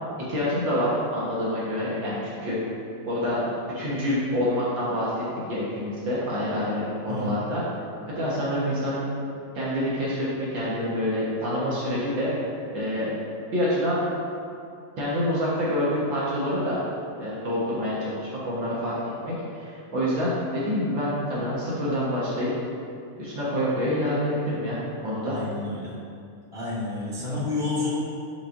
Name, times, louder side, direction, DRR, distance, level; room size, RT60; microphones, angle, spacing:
voice 1, 0.2-2.6 3.0-3.5 3.7-7.6 8.1-9.1 9.5-12.3 12.7-13.1 13.5-14.0 15.0-16.8 17.2-19.0 19.2-22.5 23.2-25.4, equal, 75° right, -8 dB, 1.0 m, -27 dB
voice 2, 7.1-7.5 25.2-25.9 26.5-27.9, left 2 dB, 45° left, -10 dB, 0.8 m, -30 dB
12.0 x 5.3 x 2.6 m, 2.5 s
omnidirectional pair, 4.1 m